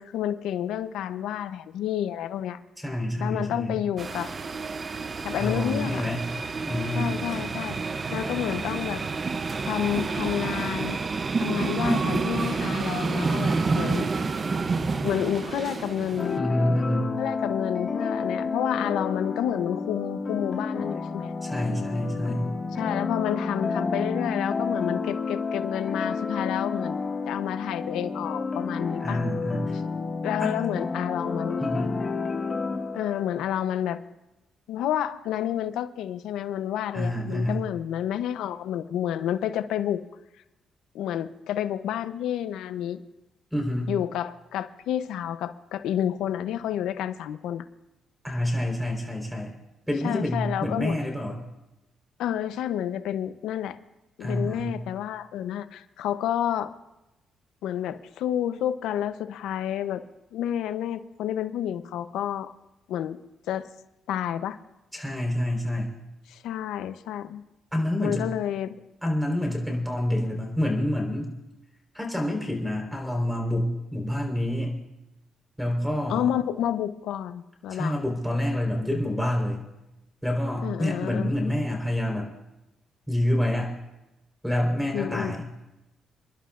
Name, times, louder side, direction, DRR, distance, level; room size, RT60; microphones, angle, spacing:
voice 1, 0.0-2.6 3.2-4.3 5.2-6.1 7.0-9.0 9.7-11.0 11.4-14.1 15.0-16.4 17.2-21.3 22.8-27.0 27.3-29.2 29.7-29.8 30.2-31.6 32.9-34.0 34.7-40.0 40.9-43.0 43.9-47.6 50.0-51.0 52.2-53.8 54.2-56.7 57.6-60.0 60.3-62.5 62.9-63.2 63.5-63.7 64.1-64.6 66.3-67.4 68.0-68.7 76.1-78.0 80.6-81.3 84.9-85.4, left 10 dB, 85° left, 11 dB, 0.7 m, -30 dB
voice 2, 2.8-3.8 5.3-6.2 6.6-7.1 16.4-17.1 21.4-22.5 29.0-29.8 30.4-30.5 31.6-31.9 36.9-37.6 43.5-43.9 48.2-49.5 49.9-51.4 54.2-54.8 64.9-66.0 67.7-68.3 69.0-71.3 71.9-74.8 75.6-76.3 77.7-79.6 80.2-82.3 83.1-83.7 84.4-85.5, left 1 dB, ahead, 0 dB, 4.2 m, -27 dB
sound 1, 4.0-16.4, right 4 dB, 35° right, 0.6 m, -29 dB
sound 2, 16.2-33.4, left 4 dB, 35° left, 1.8 m, -30 dB
29.5 x 11.5 x 2.5 m, 0.98 s
cardioid pair, 90°, 0 cm